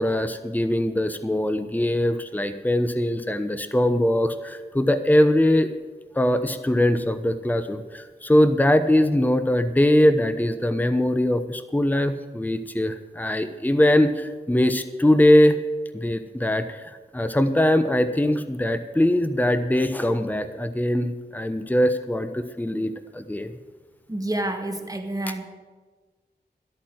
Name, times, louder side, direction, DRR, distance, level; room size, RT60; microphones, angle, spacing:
voice 1, 0.0-5.7 6.1-15.6 15.9-23.5, left 1 dB, 10° left, 10 dB, 0.9 m, -21 dB
voice 2, 24.1-25.4, right 1 dB, 20° right, 5 dB, 2.0 m, -28 dB
13.0 x 8.8 x 7.9 m, 1.3 s
cardioid pair, 50°, 18 cm